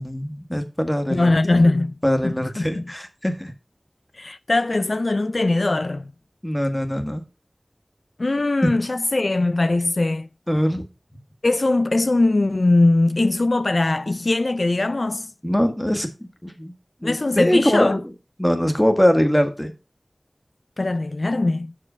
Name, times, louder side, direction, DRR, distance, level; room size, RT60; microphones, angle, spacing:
voice 1, 0.0-1.6 2.0-3.5 6.4-7.2 10.5-10.8 15.4-16.1 16.4-16.7 17.0-18.0 18.4-19.7, equal, 15° left, 1.6 m, -22 dB
voice 2, 1.1-1.9 2.2-2.8 4.1-6.1 8.2-10.3 11.4-15.3 17.0-18.0 20.8-21.7, left 2 dB, 70° left, 0.3 m, -20 dB
6.5 x 4.8 x 5.6 m
wide cardioid pair, 45°, 0 cm